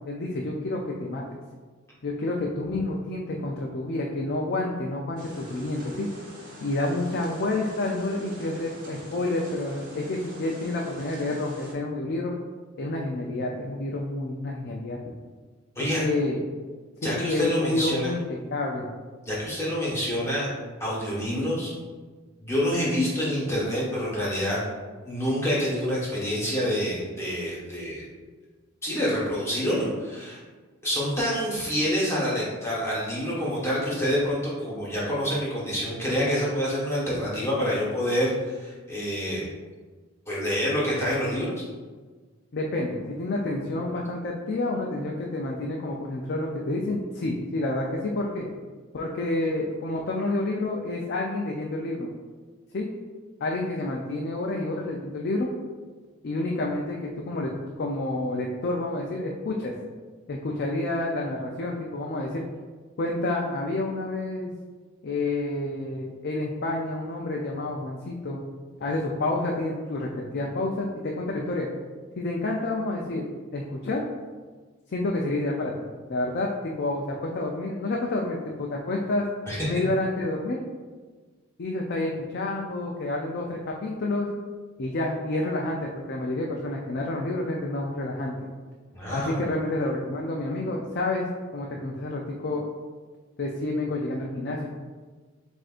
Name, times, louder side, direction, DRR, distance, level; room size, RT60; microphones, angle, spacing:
voice 1, 0.0-1.2 2.0-6.1 6.6-12.3 12.8-15.0 15.8-16.4 17.0-18.8 42.5-48.5 48.9-52.1 52.7-52.9 53.4-55.5 56.2-57.5 57.8-59.7 60.3-62.4 63.0-64.5 65.0-68.4 68.8-71.7 72.2-74.0 74.9-75.7 76.1-79.2 79.7-80.6 81.6-84.3 84.8-88.3 89.1-92.6 93.4-94.7, left 2 dB, 55° left, -1 dB, 0.4 m, -29 dB
sound 1, 5.2-11.7, equal, 45° right, 1.2 m, -45 dB
voice 2, 17.0-18.1 19.3-20.5 20.8-21.7 22.4-24.6 25.0-28.0 28.8-30.4 30.8-39.4 40.3-41.6 79.5-79.7 88.9-89.4, equal, 15° left, -7 dB, 1.3 m, -27 dB
7.6 x 2.6 x 2.5 m, 1.4 s
head